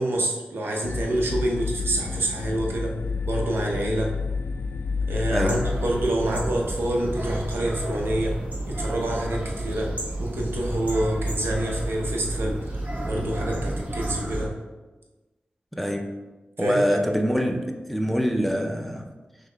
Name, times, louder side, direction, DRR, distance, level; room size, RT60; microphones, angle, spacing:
voice 1, 0.0-2.9 3.2-4.1 5.1-8.3 8.7-9.9 10.2-12.6 13.0-14.5 16.6-17.0, right 1 dB, 85° right, -1 dB, 0.7 m, -27 dB
sound 1, 0.8-6.1, left 4 dB, 75° left, 0.4 m, -29 dB
sound 2, 5.3-14.4, right 1 dB, 40° right, 1.2 m, -31 dB
voice 2, 15.7-16.1 16.6-19.1, equal, ahead, 2 dB, 0.4 m, -25 dB
5.6 x 2.1 x 3.3 m, 1.2 s
wide cardioid pair, 80°, 4 cm